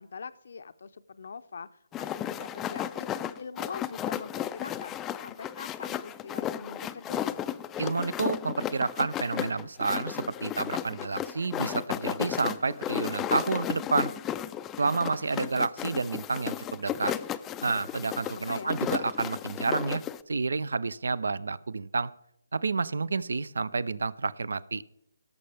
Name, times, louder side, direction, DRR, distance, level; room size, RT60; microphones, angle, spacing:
voice 1, 0.0-5.0 5.2-7.4 18.2-18.8, left 5 dB, 60° left, 12 dB, 0.6 m, -43 dB
sound 1, 1.9-20.2, left 10 dB, 15° left, 0.3 m, -34 dB
voice 2, 7.8-14.1 14.8-17.1 17.6-20.0 20.3-22.1 22.5-24.8, right 4 dB, 75° right, 20 dB, 0.5 m, -29 dB
17.0 x 6.8 x 3.4 m, 0.80 s
hypercardioid pair, 160°, 0 cm